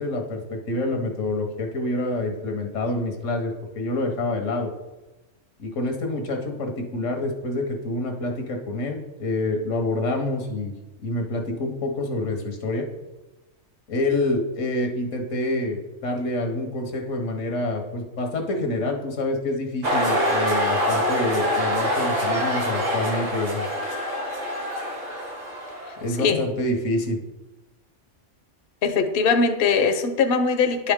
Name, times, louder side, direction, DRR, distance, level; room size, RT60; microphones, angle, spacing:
voice 1, 0.0-4.7 5.6-10.7 11.0-12.9 13.9-23.7 26.0-27.2, left 2 dB, 90° left, 3 dB, 1.4 m, -27 dB
sound 1, 19.8-26.2, equal, 80° right, 1.6 m, -25 dB
voice 2, 28.8-30.9, left 5 dB, 55° left, 6 dB, 0.8 m, -21 dB
10.0 x 4.9 x 3.6 m, 1.1 s
omnidirectional pair, 1.3 m